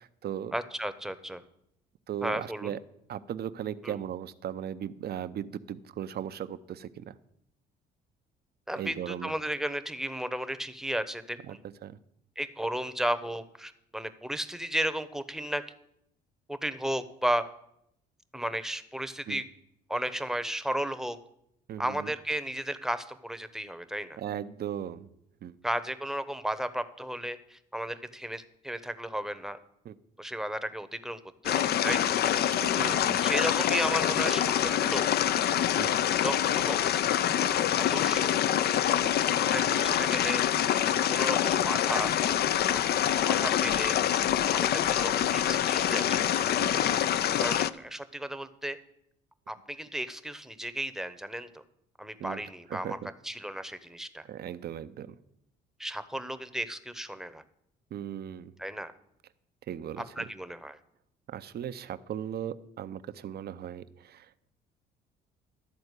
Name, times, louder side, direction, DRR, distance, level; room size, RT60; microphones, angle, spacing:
voice 1, 0.0-0.6 2.1-2.8 3.1-7.1 8.8-9.3 11.5-11.6 11.8-12.0 19.3-19.4 21.7-22.1 24.2-25.1 25.4-25.6 29.8-29.9 32.5-33.2 35.8-36.0 39.0-39.1 46.6-46.8 52.2-52.4 52.7-53.1 54.2-55.2 57.9-58.5 59.7-60.3 61.3-64.5, right 10 dB, 50° right, 13 dB, 0.7 m, -37 dB
voice 2, 0.5-1.4 2.2-2.8 3.8-4.0 8.7-11.6 12.4-15.6 16.5-17.4 18.3-19.4 19.9-21.2 21.8-24.2 25.6-29.6 30.2-32.2 32.7-35.1 36.2-36.8 37.8-38.4 39.5-40.4 41.0-42.1 42.7-42.9 43.2-44.0 44.5-46.6 47.4-48.8 49.5-51.5 52.0-53.0 53.2-54.2 55.8-57.4 58.6-58.9 60.0-60.8, right 1 dB, ahead, 11 dB, 0.9 m, -34 dB
sound 1, 31.4-47.7, left 10 dB, 55° left, 0.5 m, -26 dB
12.5 x 4.3 x 8.1 m, 0.77 s
supercardioid pair, 70°, 20 cm